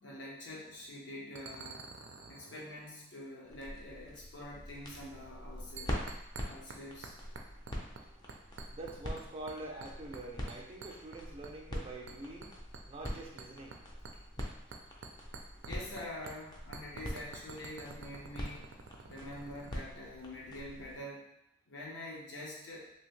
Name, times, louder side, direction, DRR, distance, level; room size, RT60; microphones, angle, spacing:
voice 1, 0.0-1.9 2.3-6.0 6.4-7.2 15.6-18.8 19.0-21.3 21.7-22.9, left 1 dB, 75° left, -4 dB, 0.9 m, -46 dB
sound 1, 0.7-0.9 1.4-3.0 5.8-6.8 7.0-8.0 8.3-9.2 9.5-10.2 10.5-11.8 12.1-16.0 16.3-16.4 16.7-19.8, right 4 dB, 90° right, 0.4 m, -48 dB
sound 2, 3.4-21.0, equal, 20° left, 0.5 m, -44 dB
voice 2, 7.2-15.7, right 2 dB, 30° right, 0 dB, 0.5 m, -47 dB
2.8 x 2.7 x 3.1 m, 0.80 s
head